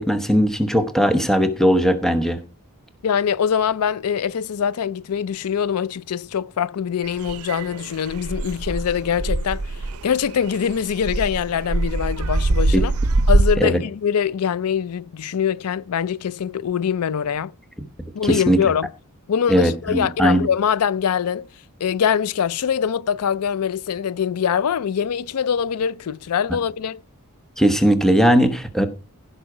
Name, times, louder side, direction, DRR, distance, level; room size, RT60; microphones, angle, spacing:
voice 1, 0.0-2.4 12.7-12.8 13.6-13.8 18.2-18.6 19.5-20.5 27.6-28.9, equal, ahead, 0.9 m, -18 dB
voice 2, 3.0-9.6 10.0-12.9 13.3-17.5 18.1-18.9 19.3-21.5 21.8-27.0, left 7 dB, 80° left, 0.4 m, -23 dB
sound 1, 7.0-13.5, right 2 dB, 70° right, 0.7 m, -23 dB
15.5 x 5.7 x 4.8 m
head